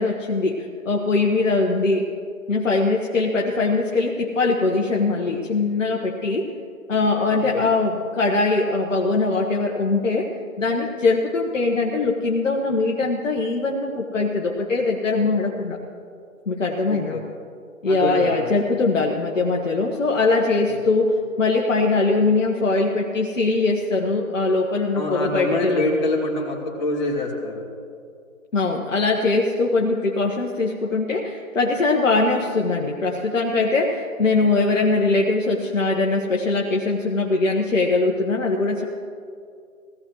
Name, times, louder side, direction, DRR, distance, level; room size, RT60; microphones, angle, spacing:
voice 1, 0.0-2.0 2.5-6.5 6.9-10.3 10.6-15.8 16.5-17.2 17.8-26.1 28.5-38.8, left 3 dB, 60° left, 0 dB, 1.5 m, -21 dB
voice 2, 7.3-7.7 16.8-17.2 17.9-18.6 24.9-27.6, left 1 dB, 30° left, -3 dB, 2.7 m, -26 dB
18.0 x 15.5 x 3.1 m, 2.3 s
hypercardioid pair, 160°, 42 cm